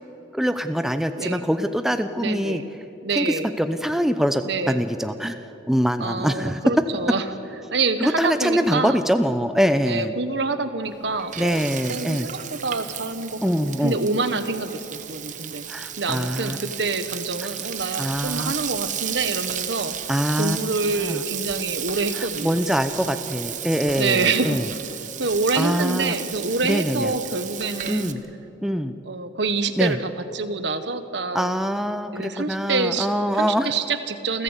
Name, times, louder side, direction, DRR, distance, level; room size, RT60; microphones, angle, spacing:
voice 1, 0.3-2.6 3.2-5.4 5.7-6.6 8.0-10.1 11.4-12.3 13.4-14.0 15.7-16.6 18.0-18.5 20.1-20.6 21.0-21.2 22.2-24.6 25.6-26.2 26.6-27.1 27.9-28.2 28.6-28.9 29.8-30.0 31.3-33.7, equal, ahead, 8 dB, 0.7 m, -24 dB
voice 2, 1.1-1.4 2.2-2.7 3.0-3.5 4.4-4.9 6.0-7.2 7.7-9.0 9.8-11.6 11.9-19.9 20.4-22.6 23.0-23.3 24.0-24.6 25.2-28.1 29.0-31.5 32.1-33.1 33.3-34.4, right 3 dB, 65° right, 10 dB, 1.4 m, -26 dB
Frying (food), 10.8-28.1, right 10 dB, 40° right, 1.1 m, -33 dB
28.5 x 15.0 x 8.2 m, 2.9 s
head